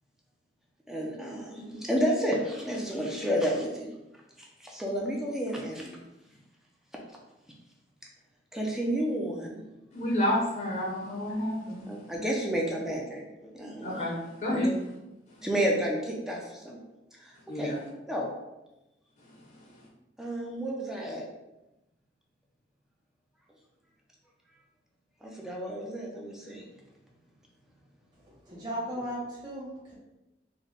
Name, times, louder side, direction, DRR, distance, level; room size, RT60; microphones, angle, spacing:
voice 1, 0.9-3.9 4.6-6.0 8.5-9.6 11.9-14.0 14.5-14.6 15.4-16.8 17.2-17.7 18.1-18.3 20.2-21.2 25.2-26.6, equal, 5° right, -2 dB, 0.5 m, -31 dB
voice 2, 9.9-11.9 13.8-14.7 17.5-17.8, left 1 dB, 45° left, -3 dB, 0.7 m, -29 dB
voice 3, 28.3-29.9, equal, 25° right, -7 dB, 1.1 m, -36 dB
3.9 x 2.2 x 3.3 m, 0.97 s
head